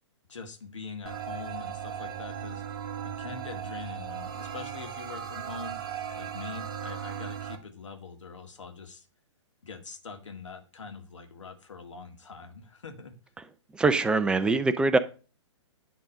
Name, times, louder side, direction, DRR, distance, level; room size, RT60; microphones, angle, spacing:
voice 1, 0.3-5.8 6.2-9.1 9.6-13.1, left 4 dB, 75° left, 5 dB, 1.9 m, -43 dB
sound 1, 1.1-7.6, right 8 dB, 45° right, 1.3 m, -37 dB
voice 2, 13.7-15.0, right 3 dB, 5° right, 11 dB, 0.4 m, -23 dB
10.0 x 3.8 x 5.0 m, 0.35 s
figure-of-eight pair, 125°, 16 cm